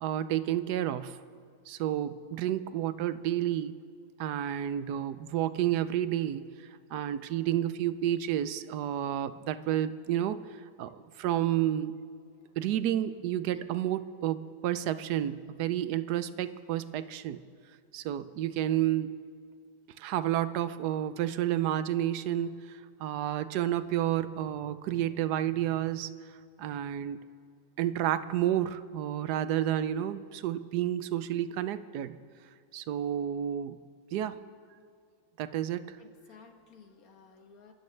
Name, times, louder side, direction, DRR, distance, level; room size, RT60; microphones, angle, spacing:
voice 1, 0.0-1.2 1.7-3.8 4.2-6.4 6.9-11.9 12.6-17.4 17.9-19.2 20.0-26.1 26.6-27.2 27.8-32.2 32.7-33.8 34.1-34.4 35.4-36.0, right 11 dB, 75° right, 13 dB, 1.2 m, -30 dB
voice 2, 36.0-37.7, left 6 dB, 55° left, 4 dB, 1.8 m, -56 dB
29.5 x 13.0 x 3.3 m, 2.2 s
omnidirectional pair, 1.8 m